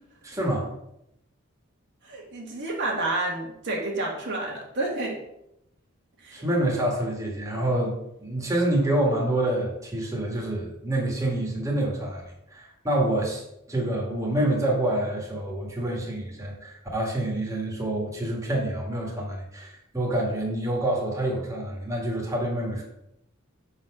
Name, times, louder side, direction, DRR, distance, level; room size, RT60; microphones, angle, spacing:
voice 1, 0.2-0.7 6.3-12.2 12.5-13.4 13.7-22.8, right 1 dB, 15° right, -2 dB, 1.8 m, -27 dB
voice 2, 2.0-5.2 6.2-6.4, right 2 dB, 60° right, -2 dB, 1.7 m, -30 dB
6.3 x 4.1 x 6.0 m, 0.80 s
head